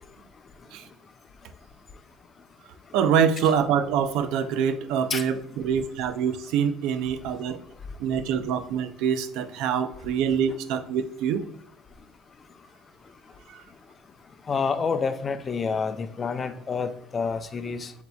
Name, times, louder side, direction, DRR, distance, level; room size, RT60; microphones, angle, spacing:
voice 1, 2.9-7.6 8.0-11.5 13.5-13.6, right 7 dB, 70° right, 10 dB, 0.4 m, -25 dB
voice 2, 14.5-17.9, left 5 dB, 35° left, 10 dB, 0.5 m, -28 dB
7.7 x 2.9 x 2.3 m, 0.74 s
supercardioid pair, 85°, 0 cm